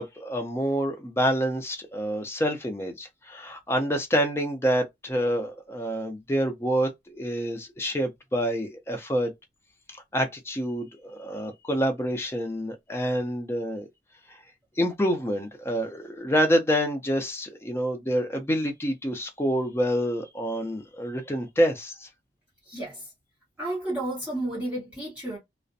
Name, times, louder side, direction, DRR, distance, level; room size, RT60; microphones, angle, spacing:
voice 1, 0.0-9.3 10.1-13.9 14.8-22.1, equal, 15° left, 0.4 m, -27 dB
voice 2, 22.6-23.1 23.6-25.4, right 1 dB, 5° right, 1.2 m, -32 dB
2.4 x 2.0 x 2.6 m
head